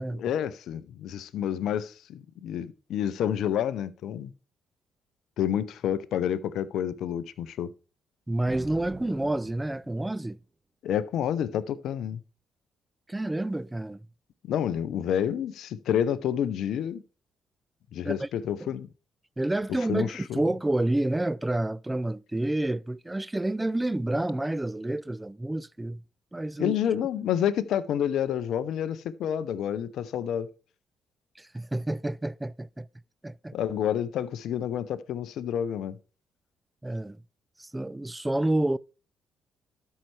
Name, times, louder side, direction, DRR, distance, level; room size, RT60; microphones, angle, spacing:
voice 1, 0.2-4.3 5.4-7.7 10.8-12.2 14.5-17.0 17.9-18.9 19.9-20.4 26.6-30.5 33.5-35.9, left 9 dB, 70° left, 0.5 m, -29 dB
voice 2, 8.3-10.4 13.1-14.0 18.0-18.3 18.6-18.7 19.4-26.0 26.3-26.8 31.4-32.9 33.2-33.5 36.8-37.2 37.6-38.8, right 1 dB, 15° right, 0.3 m, -29 dB
sound 1, 8.5-10.2, right 3 dB, 30° right, 0.8 m, -44 dB
12.5 x 5.5 x 3.2 m
hypercardioid pair, 45°, 0 cm